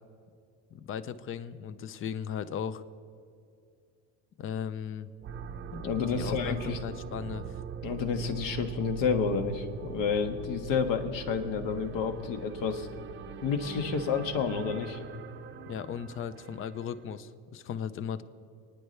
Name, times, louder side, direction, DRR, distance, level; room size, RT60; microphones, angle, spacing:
voice 1, 0.7-2.8 4.4-5.1 6.1-7.5 15.7-18.2, left 8 dB, 35° left, 14 dB, 0.6 m, -37 dB
sound 1, 5.2-17.1, right 7 dB, 30° right, 0.7 m, -42 dB
voice 2, 5.7-6.8 7.8-12.9 13.4-15.0, left 6 dB, 60° left, 6 dB, 1.6 m, -30 dB
27.5 x 9.9 x 3.3 m, 2.4 s
supercardioid pair, 120°, 38 cm